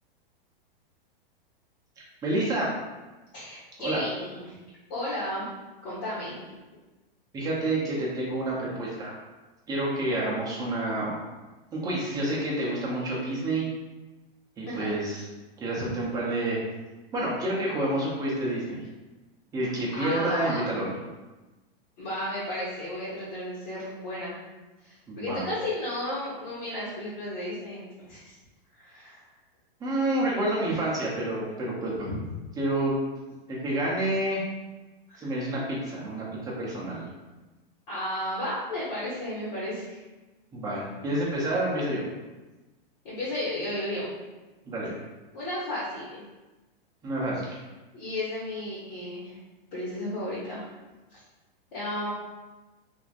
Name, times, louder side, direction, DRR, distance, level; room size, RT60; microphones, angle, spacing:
voice 1, 2.2-2.7 3.8-4.0 7.3-9.1 9.7-11.2 11.7-13.7 14.6-15.2 15.6-16.6 17.1-18.8 19.5-20.9 25.1-25.5 29.8-32.1 32.6-33.0 33.5-34.4 35.2-37.1 40.5-42.0 44.7-44.9 47.0-47.4, right 1 dB, 10° right, -5 dB, 0.6 m, -28 dB
voice 2, 3.3-4.5 4.9-5.5 5.8-6.6 14.6-14.9 20.0-20.7 22.0-24.4 25.2-28.4 28.7-29.2 32.1-32.2 35.1-35.3 37.9-40.0 43.0-44.1 45.3-46.2 47.9-49.4 49.7-50.7 51.1-51.2 51.7-52.1, left 1 dB, 50° left, -10 dB, 1.3 m, -33 dB
2.9 x 2.5 x 2.4 m, 1.1 s
hypercardioid pair, 140°, 29 cm